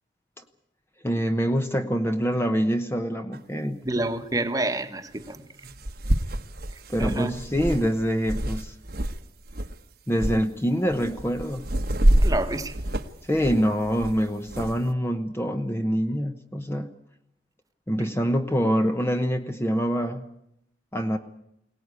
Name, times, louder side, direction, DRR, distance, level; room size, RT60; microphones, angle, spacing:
voice 1, 1.0-3.8 6.9-8.7 10.1-11.7 13.3-16.9 17.9-20.2 20.9-21.2, equal, 15° left, 0.9 m, -25 dB
sound 1, 3.3-3.4 5.2-5.3 5.6-9.2 9.5-9.8 10.2-10.4 10.9-14.8, right 1 dB, 50° right, 1.2 m, -26 dB
voice 2, 3.8-5.4 7.0-7.4 12.2-12.8, right 2 dB, 20° right, 1.3 m, -28 dB
22.5 x 18.5 x 9.7 m
head